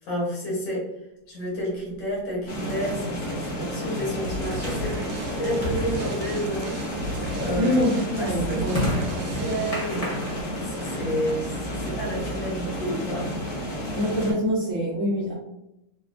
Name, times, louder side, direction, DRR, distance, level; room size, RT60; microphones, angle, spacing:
voice 1, 0.0-0.9 1.3-6.8 7.3-7.8 8.2-10.2 10.6-13.4, equal, 85° left, -4 dB, 1.9 m, -30 dB
sound 1, 1.9-12.3, equal, 45° left, 0.4 m, -36 dB
sound 2, 2.5-14.3, equal, 65° left, 1.8 m, -31 dB
sound 3, 4.2-10.0, equal, 85° right, 1.3 m, -37 dB
voice 2, 7.6-8.9 14.0-15.3, equal, 60° right, -5 dB, 0.8 m, -25 dB
4.0 x 2.1 x 2.4 m, 0.85 s
omnidirectional pair, 2.0 m